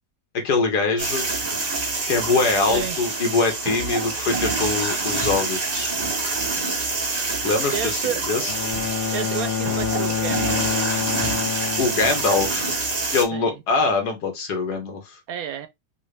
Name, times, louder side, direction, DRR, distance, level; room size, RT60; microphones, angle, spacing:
voice 1, 0.3-1.3 2.1-5.9 7.4-8.5 11.8-12.7 13.1-15.2, left 4 dB, 75° left, 1.8 m, -23 dB
sound 1, 1.0-13.2, right 3 dB, 30° right, 0.8 m, -26 dB
voice 2, 7.7-8.2 9.1-10.6 13.3-13.6 15.3-15.7, right 9 dB, 70° right, 1.0 m, -30 dB
Bowed string instrument, 8.5-12.6, left 8 dB, 55° left, 0.7 m, -27 dB
5.4 x 2.5 x 3.3 m
omnidirectional pair, 1.8 m